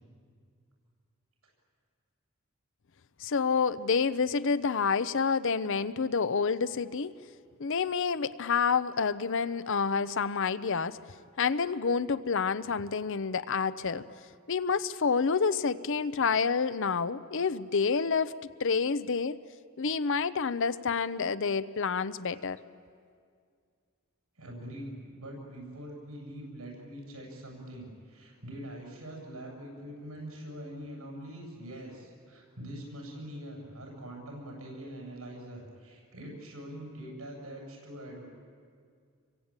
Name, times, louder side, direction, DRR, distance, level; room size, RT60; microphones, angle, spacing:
voice 1, 3.2-7.1 7.6-11.0 11.4-14.0 14.5-18.3 18.6-19.4 19.8-22.6, left 5 dB, 60° left, 15 dB, 0.7 m, -28 dB
voice 2, 24.4-38.3, right 1 dB, 80° right, -1 dB, 7.9 m, -43 dB
27.0 x 23.5 x 8.9 m, 2.2 s
head